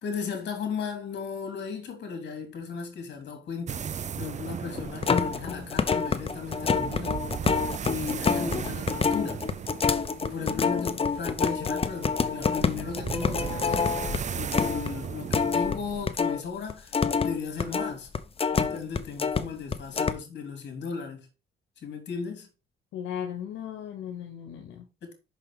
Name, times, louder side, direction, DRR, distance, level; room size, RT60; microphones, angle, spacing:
voice 1, 0.0-3.9 4.1-7.2 7.9-9.5 10.2-14.1 14.3-18.1 18.5-21.3 21.8-22.5 25.0-25.1, left 6 dB, 60° left, 3.2 m, -36 dB
sound 1, 3.7-16.1, right 8 dB, 35° right, 0.5 m, -37 dB
sound 2, 4.8-16.4 16.7-19.4 19.7-20.1, left 5 dB, 30° left, 0.7 m, -27 dB
voice 2, 10.4-11.0 22.9-24.8, left 9 dB, 85° left, 1.3 m, -37 dB
6.0 x 5.7 x 5.0 m
cardioid pair, 90°, 20 cm